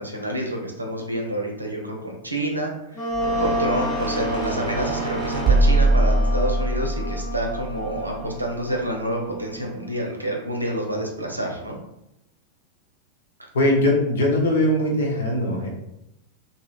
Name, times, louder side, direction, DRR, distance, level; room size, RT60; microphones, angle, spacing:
voice 1, 0.0-3.1 3.4-11.8, right 1 dB, 85° right, 1 dB, 0.5 m, -28 dB
Wind instrument woodwind instrument, 2.9-10.4, right 1 dB, 30° left, 0.8 m, -31 dB
sound 1, 3.1-8.4, right 1 dB, 15° right, 0.9 m, -23 dB
voice 2, 13.5-15.7, left 1 dB, 65° left, 0 dB, 0.7 m, -20 dB
2.8 x 2.7 x 2.4 m, 0.83 s
figure-of-eight pair, 90°, 0 cm